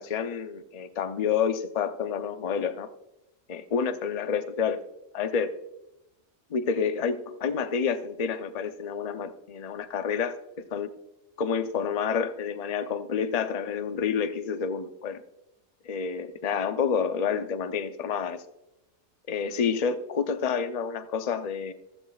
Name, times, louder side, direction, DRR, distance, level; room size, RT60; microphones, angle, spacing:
voice 1, 0.0-2.9 3.5-4.8 5.1-5.5 6.5-10.9 11.4-15.2 15.9-18.4 19.3-21.7, left 6 dB, 40° left, 9 dB, 0.6 m, -29 dB
15.0 x 14.0 x 2.4 m, 0.91 s
omnidirectional pair, 1.4 m